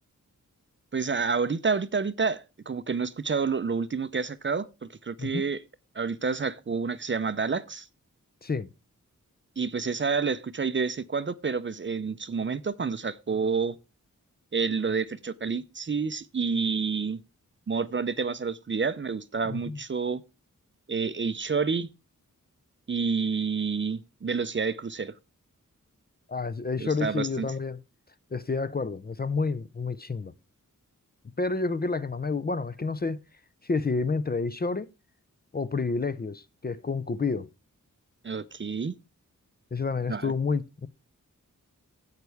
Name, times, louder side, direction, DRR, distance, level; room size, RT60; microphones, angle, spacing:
voice 1, 0.9-5.6 5.9-7.9 9.6-13.8 14.5-17.2 17.7-20.2 20.9-21.9 22.9-25.1 26.8-27.5 38.2-38.9 40.1-40.3, right 5 dB, 35° right, 0.5 m, -29 dB
voice 2, 19.4-19.8 26.3-27.8 28.3-30.3 31.4-33.2 33.6-34.9 35.5-37.5 39.7-40.9, left 4 dB, 30° left, 0.5 m, -29 dB
10.5 x 8.2 x 3.4 m
wide cardioid pair, 95°, 32 cm